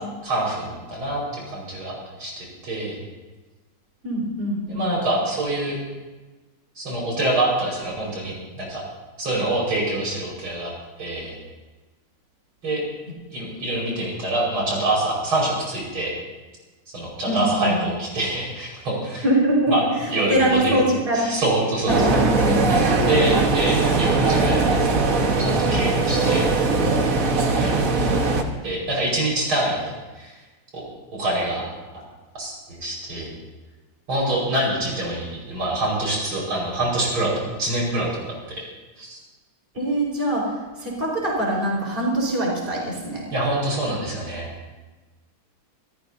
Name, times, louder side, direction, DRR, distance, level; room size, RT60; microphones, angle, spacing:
voice 1, 0.2-3.0 4.7-5.8 6.8-8.8 9.2-10.7 11.0-11.4 12.6-12.8 13.3-16.1 16.9-19.2 19.7-19.8 20.1-20.8 21.1-22.1 22.7-22.8 23.1-24.8 25.4-26.5 26.9-27.2 27.5-28.3 28.6-30.3 30.7-30.8 31.1-31.7 32.4-33.3 34.1-38.7 39.0-39.2 43.3-44.5, right 1 dB, 85° right, -3 dB, 6.2 m, -25 dB
voice 2, 4.0-4.9 17.2-17.8 19.2-19.8 20.3-21.4 21.9-23.0 39.7-43.3, right 1 dB, 25° right, -3 dB, 4.8 m, -23 dB
sound 1, 21.9-28.4, right 3 dB, 45° right, 1.7 m, -20 dB
27.5 x 14.5 x 2.8 m, 1.2 s
omnidirectional pair, 2.2 m